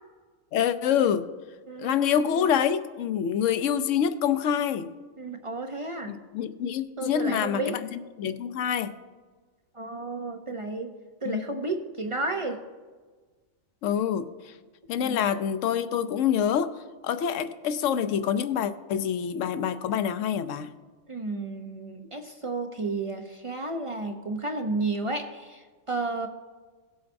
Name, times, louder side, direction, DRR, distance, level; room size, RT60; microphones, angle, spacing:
voice 1, 0.5-1.3 1.8-4.9 6.1-8.9 11.3-11.4 13.8-14.3 14.9-16.7 17.0-20.7, left 8 dB, 70° left, 12 dB, 0.9 m, -26 dB
voice 2, 1.7-2.5 5.2-6.2 7.0-7.8 9.7-10.9 11.2-12.6 14.9-15.2 21.1-26.3, right 3 dB, 45° right, 5 dB, 0.4 m, -32 dB
18.0 x 7.8 x 2.6 m, 1.4 s
omnidirectional pair, 1.4 m